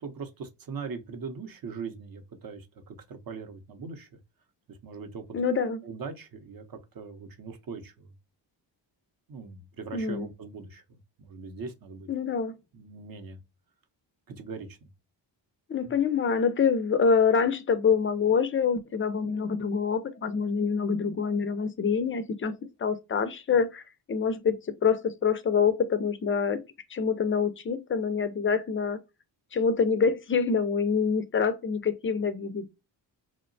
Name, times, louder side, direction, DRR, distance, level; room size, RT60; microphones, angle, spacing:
voice 1, 0.0-4.1 4.7-5.2 5.8-8.1 9.3-12.1 12.7-13.4 14.3-14.9 15.8-16.0, right 5 dB, 50° right, 0.7 m, -41 dB
voice 2, 5.3-5.8 9.9-10.2 12.1-12.5 15.7-23.8 24.1-24.6 24.8-26.6 26.9-29.0 29.5-32.7, left 6 dB, 30° left, 0.4 m, -26 dB
2.8 x 2.1 x 2.4 m
cardioid pair, 85°, 46 cm